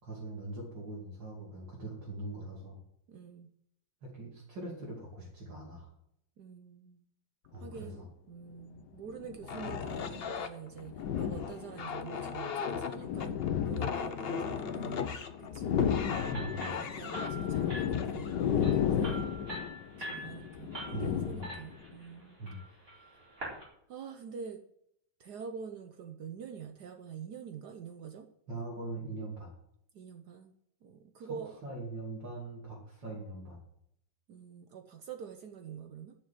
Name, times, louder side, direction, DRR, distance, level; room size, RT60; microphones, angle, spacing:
voice 1, 0.0-2.8 4.0-5.9 7.5-8.1 16.3-16.7 20.9-21.5 22.4-22.6 28.5-29.5 31.2-33.6, right 2 dB, 85° right, -4 dB, 3.4 m, -42 dB
voice 2, 3.1-3.5 6.4-7.0 7.5-13.4 13.7-15.1 15.4-15.8 16.7-19.2 20.0-22.4 23.9-24.6 25.2-28.3 29.9-30.5 30.8-31.6 34.3-36.1, right 6 dB, 70° right, 6 dB, 1.3 m, -46 dB
sound 1, 7.6-7.8 8.8-10.3 10.8-12.0 12.7-15.1 15.4-21.9, left 9 dB, 70° left, 1.4 m, -34 dB
sound 2, 9.4-19.7 20.4-20.6 21.0-21.5, left 6 dB, 45° left, 0.8 m, -38 dB
sound 3, 16.1-23.6, right 1 dB, 50° right, 4.8 m, -45 dB
12.5 x 6.6 x 7.5 m, 0.75 s
omnidirectional pair, 1.9 m